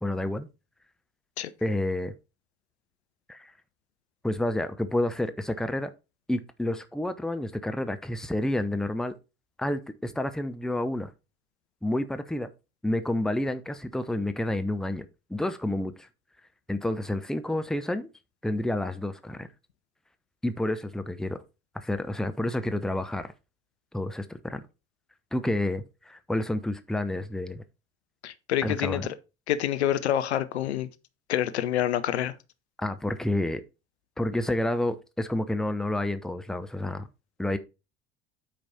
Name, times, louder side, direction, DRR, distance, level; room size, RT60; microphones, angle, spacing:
voice 1, 0.0-0.5 1.6-2.1 3.3-3.5 4.2-5.9 6.3-9.1 9.6-11.1 11.8-12.5 12.8-16.1 16.7-18.1 18.4-19.5 20.4-21.4 21.7-23.3 23.9-24.6 25.3-27.6 28.6-29.0 32.8-33.6 34.2-37.1 37.4-37.6, left 1 dB, ahead, 0.8 m, -29 dB
voice 2, 28.2-29.0 29.5-30.9 31.3-32.3, left 11 dB, 75° left, 0.8 m, -27 dB
8.8 x 5.2 x 4.3 m
figure-of-eight pair, 65°, 33 cm